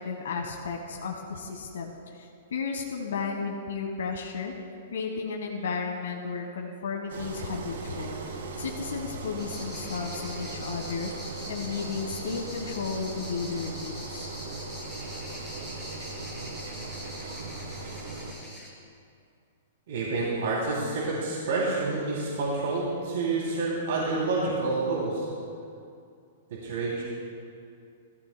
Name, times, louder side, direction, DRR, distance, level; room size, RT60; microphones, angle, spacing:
voice 1, 0.0-4.5 4.9-11.1 11.5-14.3, left 5 dB, 85° left, 1 dB, 1.3 m, -34 dB
Engine, 7.1-18.3, right 3 dB, 90° right, 2.9 m, -39 dB
sound 1, 9.4-18.7, equal, ahead, 2.7 m, -43 dB
voice 2, 19.9-25.3 26.5-27.0, right 3 dB, 65° right, -5 dB, 2.9 m, -28 dB
18.0 x 14.5 x 2.2 m, 2.4 s
hypercardioid pair, 160°, 0 cm